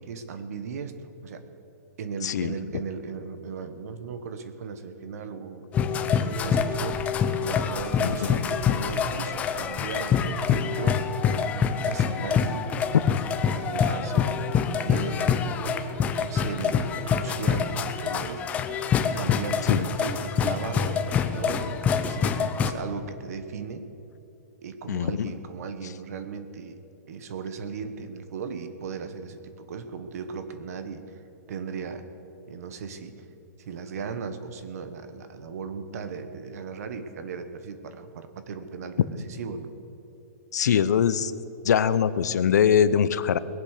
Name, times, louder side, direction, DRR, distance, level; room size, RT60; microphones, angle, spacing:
voice 1, 0.0-1.5 2.0-7.0 7.4-12.7 13.4-14.3 14.8-18.5 19.1-23.9 24.6-26.8 27.1-32.0 32.5-33.2 33.6-39.7, right 5 dB, 60° right, 10 dB, 1.4 m, -37 dB
voice 2, 2.2-2.5 8.0-8.1 12.9-13.0 19.7-19.9 24.9-25.3 40.5-41.3 41.6-43.4, left 8 dB, 80° left, 15 dB, 0.7 m, -22 dB
sound 1, 5.7-22.7, left 7 dB, 15° left, 0.6 m, -26 dB
21.0 x 7.8 x 6.6 m, 2.9 s
hypercardioid pair, 160°, 9 cm